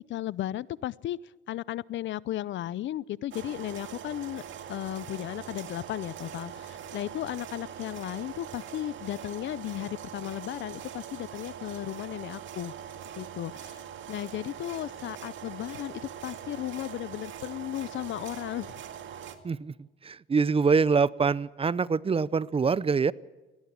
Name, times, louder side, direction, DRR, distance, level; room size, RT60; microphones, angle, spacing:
voice 1, 0.1-1.2 1.5-4.4 4.7-12.7 13.2-13.8 14.1-15.9 16.2-18.8, left 13 dB, 70° left, 22 dB, 0.6 m, -35 dB
sound 1, 3.3-19.4, right 9 dB, 70° right, 2.1 m, -42 dB
voice 2, 19.4-23.1, right 5 dB, 30° right, 20 dB, 0.6 m, -25 dB
18.5 x 18.0 x 8.6 m, 1.2 s
cardioid pair, 90°, 20 cm